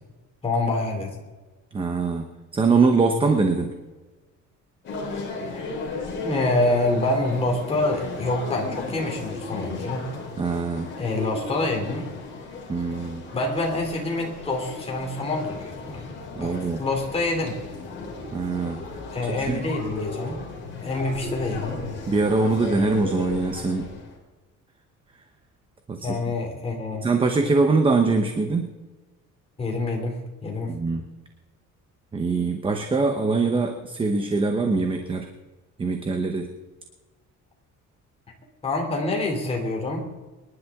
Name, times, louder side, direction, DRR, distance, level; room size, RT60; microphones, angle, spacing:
voice 1, 0.4-1.1 5.5-5.8 6.2-10.1 11.0-12.1 13.3-16.1 16.4-17.6 19.1-20.4 20.8-21.8 26.0-27.1 29.6-30.8 38.6-40.1, left 2 dB, 20° left, 0 dB, 2.9 m, -26 dB
voice 2, 1.7-2.3 2.5-3.7 10.4-10.9 12.7-13.2 16.3-16.8 18.3-18.8 19.3-19.6 22.1-23.9 25.9-26.2 27.0-28.7 30.7-31.0 32.1-35.3 35.8-36.5, right 3 dB, 15° right, 5 dB, 0.9 m, -23 dB
sound 1, 4.8-24.2, left 3 dB, 35° left, 3.6 m, -35 dB
25.0 x 11.0 x 3.7 m, 1.2 s
cardioid pair, 175°, 31 cm